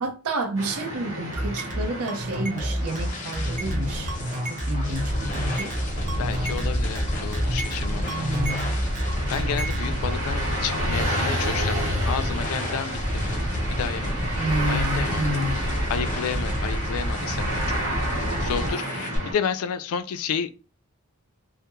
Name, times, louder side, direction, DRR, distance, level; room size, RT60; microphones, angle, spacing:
voice 1, 0.0-4.1 4.5-5.7 8.1-8.8 14.4-15.6, right 1 dB, 85° right, 0.6 m, -29 dB
sound 1, 0.6-19.3, equal, 60° right, 1.0 m, -32 dB
sound 2, 1.3-9.9, right 1 dB, 35° right, 0.4 m, -29 dB
sound 3, 2.2-19.2, equal, 35° left, 0.6 m, -30 dB
voice 2, 6.2-8.4 9.3-13.4 13.7-14.1 14.7-15.2 15.9-17.8 18.1-20.5, left 7 dB, 75° left, 0.3 m, -31 dB
2.2 x 2.0 x 2.9 m
head